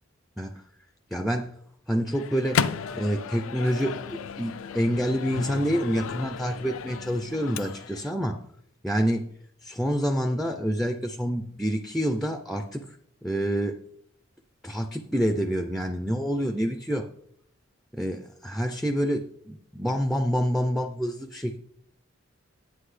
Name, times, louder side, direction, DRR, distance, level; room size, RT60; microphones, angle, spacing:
voice 1, 1.1-1.5 1.9-2.6 2.9-8.4 8.8-9.3 9.6-12.8 13.2-13.8 14.6-17.1 18.0-21.6, equal, ahead, 6 dB, 0.4 m, -27 dB
Microwave oven, 2.1-8.1, left 7 dB, 85° left, 0.4 m, -33 dB
9.8 x 8.6 x 3.2 m, 0.68 s
head